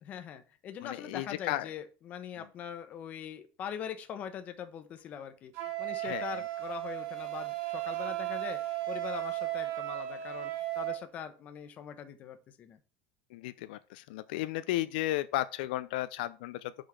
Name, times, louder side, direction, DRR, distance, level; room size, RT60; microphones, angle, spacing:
voice 1, 0.0-8.6 8.9-12.8, left 8 dB, 30° left, 1.0 m, -42 dB
voice 2, 0.8-1.7 2.4-2.5 6.0-6.4 13.3-16.7, left 15 dB, 80° left, 0.4 m, -34 dB
Wind instrument woodwind instrument, 5.5-11.0, right 16 dB, 50° right, 2.6 m, -35 dB
6.0 x 4.9 x 6.3 m
cardioid pair, 165°, 5 cm